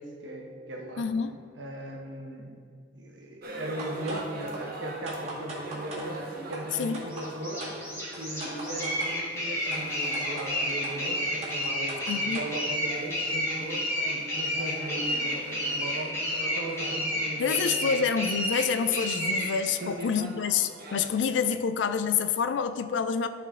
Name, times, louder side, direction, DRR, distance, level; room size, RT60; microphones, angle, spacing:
voice 1, 0.0-1.1 1.6-2.6 2.9-6.2 6.5-7.7 8.1-17.9 19.8-20.1, right 1 dB, 75° right, 0 dB, 1.1 m, -38 dB
voice 2, 1.0-1.4 6.8-7.0 12.1-12.4 17.4-23.3, left 6 dB, 70° left, 10 dB, 0.4 m, -27 dB
sound 1, 3.4-21.1, right 2 dB, 50° right, 0.8 m, -43 dB
sound 2, 3.8-4.2 4.5-4.6 5.1-6.1 6.5-6.6 6.9-7.3 7.6-7.7 8.1-9.1 9.7-9.8 10.1-10.5 10.8-10.9 11.4-12.5, right 1 dB, 35° right, 1.8 m, -40 dB
sound 3, 7.1-19.5, left 1 dB, 15° left, 1.9 m, -30 dB
11.0 x 4.4 x 3.6 m, 2.2 s
head